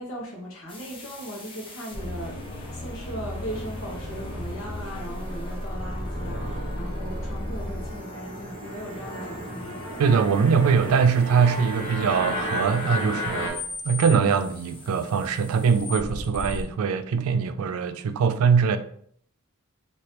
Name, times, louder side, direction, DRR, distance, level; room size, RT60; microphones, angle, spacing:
voice 1, 0.0-2.4 2.7-9.8, equal, 65° left, 1.2 m, -38 dB
sound 1, 0.7-16.6, left 1 dB, 25° left, 0.6 m, -37 dB
sound 2, 2.6-13.5, left 1 dB, 50° left, 1.5 m, -35 dB
voice 2, 10.0-13.6 13.8-18.8, right 6 dB, 70° right, 0.3 m, -22 dB
2.9 x 2.8 x 3.3 m
head